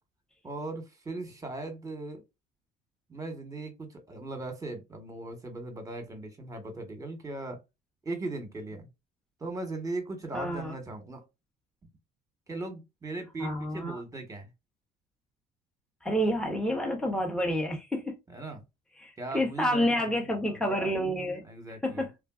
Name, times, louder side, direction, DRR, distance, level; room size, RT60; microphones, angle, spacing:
voice 1, 0.4-2.2 3.1-7.6 8.0-8.9 9.4-11.2 12.5-14.5 18.3-18.6 19.2-20.1 20.5-20.6 21.4-22.1, right 2 dB, 15° right, 1.1 m, -38 dB
voice 2, 10.3-10.7 13.4-14.0 16.0-18.1 19.0-21.4 21.8-22.1, equal, 5° left, 0.7 m, -29 dB
3.5 x 2.2 x 2.3 m
supercardioid pair, 95°, 19 cm